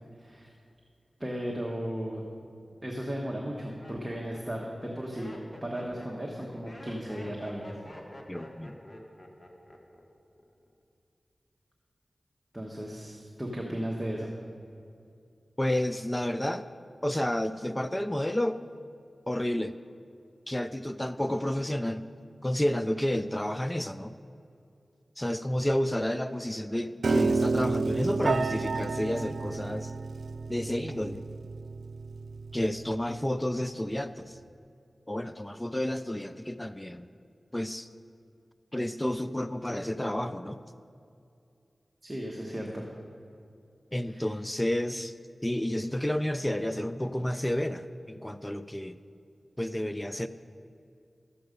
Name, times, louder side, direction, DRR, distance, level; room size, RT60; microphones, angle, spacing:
voice 1, 0.2-0.5 1.2-2.2 2.8-5.3 5.6-7.8 12.5-14.3 42.0-42.8 44.0-44.3, equal, 20° right, -1 dB, 1.3 m, -35 dB
Laughter, 2.4-2.8 3.4-10.0 10.3-10.8, left 1 dB, 30° left, 1.5 m, -47 dB
voice 2, 8.3-8.8 15.6-16.7 17.0-18.6 19.3-19.7 20.5-22.1 22.4-24.2 25.2-29.9 30.5-31.2 32.5-34.4 35.1-37.1 37.5-37.9 38.7-40.6 43.9-45.1 45.4-49.0 49.6-50.3, left 1 dB, 15° left, 12 dB, 0.4 m, -30 dB
Piano, 27.0-33.2, right 3 dB, 80° right, 0.4 m, -31 dB
13.0 x 7.7 x 5.3 m, 2.5 s
cardioid pair, 50°, 0 cm